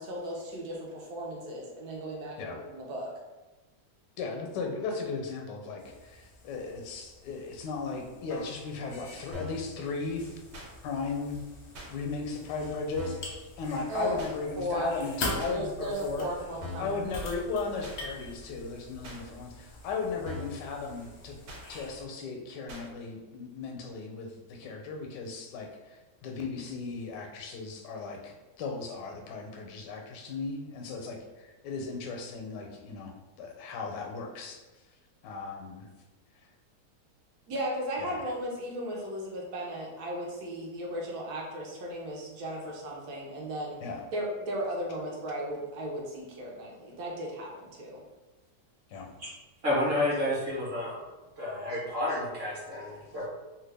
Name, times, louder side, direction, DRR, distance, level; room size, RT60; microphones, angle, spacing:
voice 1, 0.0-3.1 13.9-14.2 14.6-14.9 15.3-17.0 37.5-43.8 44.1-48.0, right 1 dB, 70° right, -2 dB, 1.1 m, -36 dB
voice 2, 4.2-10.3 10.8-11.4 11.9-16.3 16.8-21.4 21.7-34.6 35.2-35.9 38.0-38.3 43.8-44.0 48.9-49.1, left 4 dB, 85° left, 2 dB, 1.2 m, -36 dB
sound 1, 5.8-22.0, left 2 dB, 60° left, 0.7 m, -43 dB
sound 2, 9.3-9.7 10.5-10.7 11.7-11.9 13.0-13.3 14.2-14.3 15.4-15.6 16.6-17.0 17.8-18.0 19.0-19.2 20.2-20.6 21.5-21.6 22.7-22.9, left 2 dB, 90° right, 1.4 m, -41 dB
voice 3, 49.6-51.0 51.4-53.3, left 1 dB, 40° right, -6 dB, 1.1 m, -30 dB
3.0 x 2.3 x 3.3 m, 1.2 s
omnidirectional pair, 1.8 m